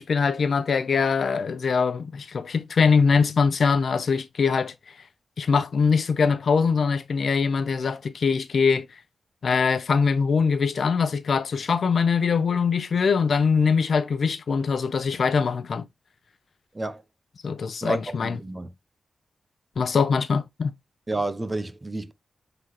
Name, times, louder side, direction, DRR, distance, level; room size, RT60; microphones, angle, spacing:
voice 1, 0.0-4.7 5.4-8.9 9.4-15.9 17.4-18.4 19.8-20.7, left 5 dB, 65° left, 0.8 m, -22 dB
voice 2, 17.8-18.7 21.1-22.1, right 2 dB, 25° right, 0.9 m, -30 dB
7.4 x 4.0 x 3.2 m
wide cardioid pair, 95°, 0 cm